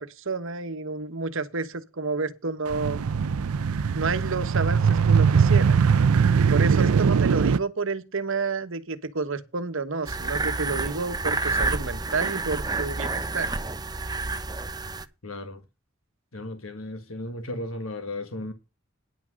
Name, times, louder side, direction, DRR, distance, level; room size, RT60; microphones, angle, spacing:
voice 1, 0.0-3.1 3.9-5.8 6.5-13.5, right 4 dB, 65° right, 1.2 m, -30 dB
sound 1, 2.7-7.6, right 6 dB, 85° right, 0.5 m, -21 dB
sound 2, 10.1-15.1, right 3 dB, 20° right, 0.8 m, -29 dB
voice 2, 15.2-15.6 16.3-18.5, left 1 dB, 75° left, 1.5 m, -35 dB
10.5 x 6.0 x 6.4 m
head